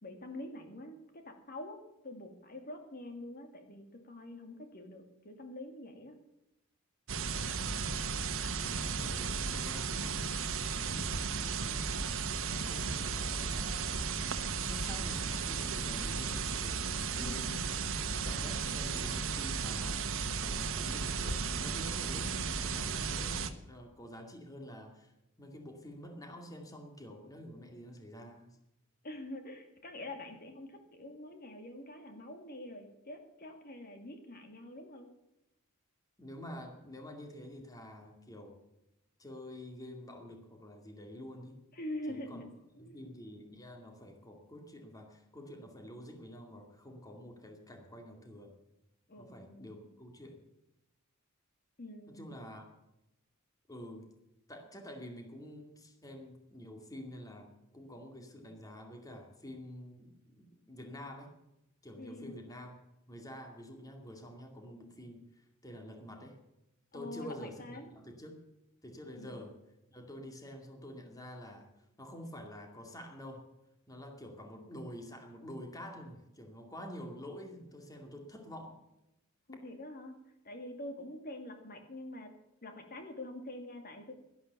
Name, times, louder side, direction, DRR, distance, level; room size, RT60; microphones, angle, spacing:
voice 1, 0.0-6.2 17.2-17.6 29.0-35.1 41.7-42.5 42.8-43.1 49.1-49.9 51.8-52.3 62.0-62.3 66.9-67.9 69.2-69.4 79.5-80.2 80.4-82.3 82.6-84.1, left 1 dB, 45° left, 5 dB, 2.3 m, -45 dB
sound 1, 7.1-23.5, right 5 dB, 65° right, 1.2 m, -35 dB
voice 2, 8.5-10.3 10.9-12.1 12.4-13.9 14.5-16.8 17.2-17.7 18.2-20.0 20.3-25.1 25.4-28.6 36.2-38.6 39.2-41.6 42.1-42.5 42.8-48.5 49.2-50.4 52.1-52.7 53.7-54.1 54.5-61.3 61.8-62.8 63.1-66.4 66.9-68.4 68.8-69.5 69.9-73.5 73.9-78.8, equal, 15° left, 3 dB, 2.4 m, -48 dB
12.0 x 11.5 x 6.9 m, 0.91 s
head